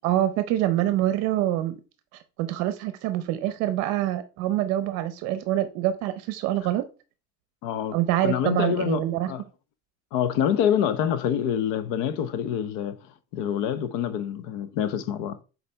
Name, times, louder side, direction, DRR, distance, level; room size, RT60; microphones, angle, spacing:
voice 1, 0.0-1.8 2.4-6.9 7.9-9.3, right 13 dB, 60° right, 0.6 m, -25 dB
voice 2, 7.6-9.4 10.1-13.0 13.3-15.4, left 9 dB, 90° left, 0.8 m, -26 dB
6.9 x 4.2 x 3.3 m
cardioid pair, 175°, 29 cm